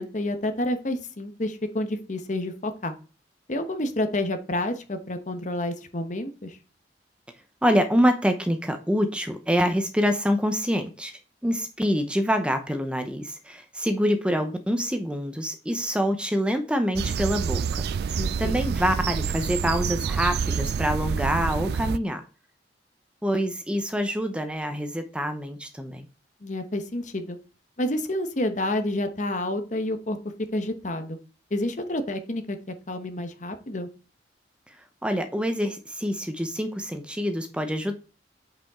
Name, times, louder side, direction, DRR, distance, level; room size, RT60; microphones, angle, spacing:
voice 1, 0.0-2.9 3.5-6.6 18.2-18.5 26.4-27.4 27.8-30.2 30.5-31.2 31.5-32.6 32.9-33.9, left 1 dB, 45° left, 8 dB, 1.0 m, -29 dB
voice 2, 7.6-11.1 11.4-17.8 18.1-22.2 23.2-26.1 34.7-34.8 35.0-37.9, equal, 5° right, 7 dB, 0.7 m, -26 dB
sound 1, 17.0-22.0, right 6 dB, 60° right, 0.3 m, -27 dB
8.5 x 5.3 x 3.6 m, 0.34 s
head